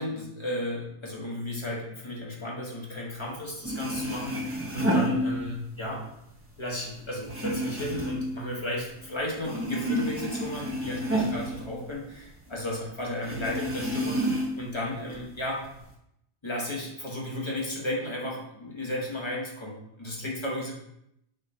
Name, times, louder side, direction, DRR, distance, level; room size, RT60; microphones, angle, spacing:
voice 1, 0.0-6.0 6.6-15.7 16.4-20.7, left 1 dB, 25° left, -2 dB, 1.0 m, -34 dB
sound 1, 3.3-3.4 3.6-5.8 6.2-9.1 9.4-12.4 12.7-12.8 13.2-14.7 15.1-15.9, equal, 15° right, 0.7 m, -30 dB
5.4 x 2.3 x 4.1 m, 0.78 s
omnidirectional pair, 1.1 m